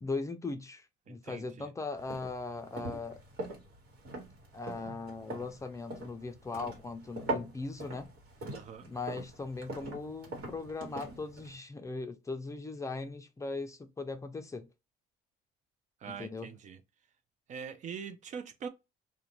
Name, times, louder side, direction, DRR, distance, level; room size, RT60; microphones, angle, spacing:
voice 1, 0.0-3.2 4.5-8.1 8.9-14.7 16.1-16.5, left 3 dB, 20° left, 0.4 m, -39 dB
voice 2, 1.1-1.7 8.5-8.9 16.0-16.8 17.5-18.7, right 6 dB, 45° right, 0.4 m, -43 dB
sound 1, 2.0-11.6, right 2 dB, 75° right, 1.3 m, -42 dB
2.4 x 2.1 x 2.9 m
cardioid pair, 110°, 17 cm